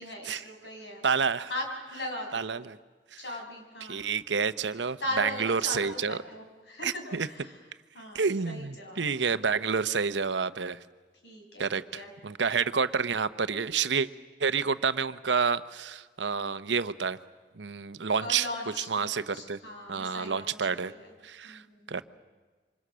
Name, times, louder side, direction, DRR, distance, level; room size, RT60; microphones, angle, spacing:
voice 1, 0.0-1.0 1.5-2.4 3.2-4.0 5.0-7.6 7.9-9.1 11.2-12.1 18.2-21.1 21.4-22.0, left 1 dB, 75° left, 1 dB, 6.3 m, -39 dB
voice 2, 1.0-1.5 2.3-2.6 3.1-3.2 3.9-6.2 6.8-7.3 8.1-10.8 11.6-11.8 12.2-14.1 14.4-17.2 17.6-18.4 18.9-19.6 19.9-20.9 21.2-21.6 21.9-22.0, right 5 dB, 85° right, 12 dB, 0.9 m, -29 dB
28.0 x 26.0 x 6.3 m, 1.3 s
head